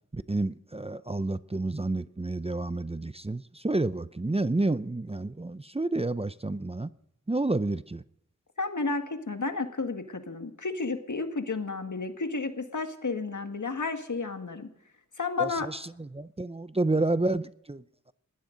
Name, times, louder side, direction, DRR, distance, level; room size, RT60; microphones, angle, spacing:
voice 1, 0.1-6.9 7.3-8.0 15.4-18.1, right 2 dB, 20° right, 0.6 m, -30 dB
voice 2, 8.6-14.7 15.2-15.7, left 4 dB, 75° left, 1.8 m, -32 dB
20.0 x 16.5 x 3.9 m
wide cardioid pair, 60°, 30 cm